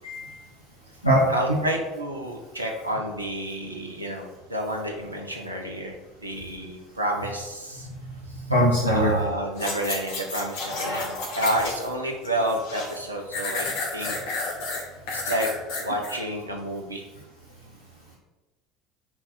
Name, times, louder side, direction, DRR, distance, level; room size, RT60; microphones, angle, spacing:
voice 1, 0.0-0.4 1.0-1.2 1.5-1.6 8.0-9.1, equal, 90° left, -6 dB, 1.4 m, -22 dB
voice 2, 1.3-6.0 6.2-7.9 8.8-13.7 13.9-14.4 15.1-15.5 15.8-17.0, right 1 dB, 85° right, 2 dB, 1.1 m, -30 dB
sound 1, 9.5-11.9 12.2-13.0 13.3-16.2 16.6-16.7, left 3 dB, 60° left, 2.3 m, -31 dB
6.0 x 4.6 x 6.4 m, 1.1 s
figure-of-eight pair, 65°, 0 cm